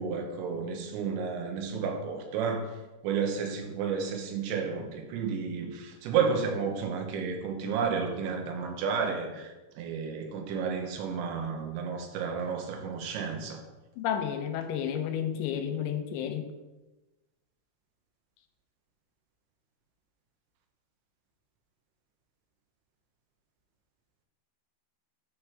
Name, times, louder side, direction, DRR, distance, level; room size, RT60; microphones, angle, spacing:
voice 1, 0.0-2.7 3.0-13.6, right 6 dB, 85° right, 3 dB, 3.2 m, -32 dB
voice 2, 14.0-16.5, left 9 dB, 85° left, 7 dB, 3.0 m, -31 dB
13.0 x 4.5 x 3.3 m, 1.1 s
omnidirectional pair, 5.3 m